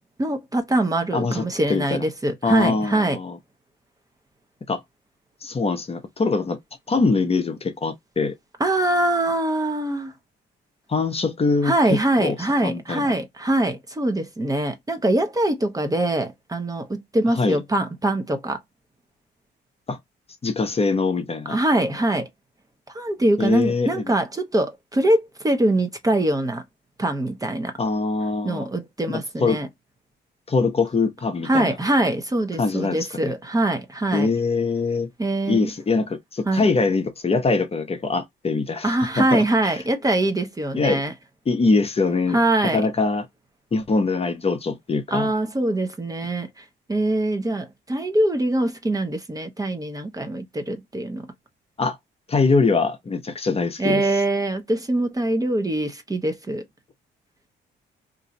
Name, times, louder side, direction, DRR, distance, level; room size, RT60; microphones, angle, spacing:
voice 1, 0.2-3.2 8.6-10.1 11.6-18.6 21.5-22.3 22.9-26.6 27.0-27.7 28.4-29.7 31.4-34.3 35.2-35.7 36.5-36.7 38.8-41.1 42.3-42.9 45.1-51.3 53.8-56.6, right 1 dB, 20° right, 0.7 m, -23 dB
voice 2, 1.1-1.4 1.7-2.1 2.4-3.4 4.7-4.8 5.4-6.6 6.9-8.4 10.9-12.4 12.6-13.1 17.3-17.6 19.9-20.0 20.4-21.6 23.4-24.1 27.8-28.7 29.4-29.6 30.5-31.8 32.6-33.3 34.1-35.1 35.5-39.4 40.7-41.0 41.5-43.3 43.7-45.3 51.8-52.0 52.3-54.0, left 4 dB, 30° left, 0.7 m, -23 dB
2.6 x 2.3 x 4.0 m
cardioid pair, 90°, 20 cm